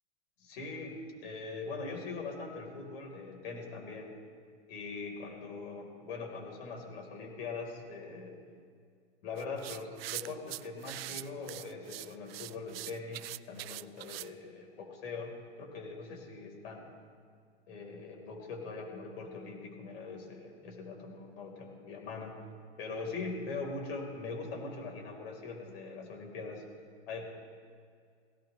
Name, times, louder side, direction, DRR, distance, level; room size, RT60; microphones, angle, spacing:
voice 1, 0.4-4.1 4.7-8.4 9.2-17.0 17.7-22.3 22.8-26.6 27.1-27.3, left 4 dB, 60° left, 1 dB, 4.4 m, -42 dB
sound 1, 9.4-14.3, right 16 dB, 60° right, 0.5 m, -43 dB
18.0 x 17.5 x 3.3 m, 2.1 s
hypercardioid pair, 130°, 34 cm